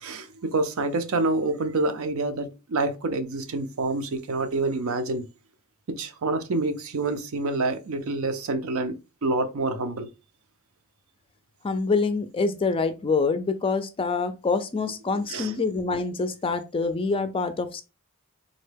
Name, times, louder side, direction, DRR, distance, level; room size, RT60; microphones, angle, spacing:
voice 1, 0.0-5.2 5.9-10.1 15.3-15.5, right 3 dB, 70° right, 0.5 m, -27 dB
voice 2, 11.6-17.8, left 4 dB, 25° left, 0.4 m, -26 dB
3.8 x 2.2 x 3.3 m
head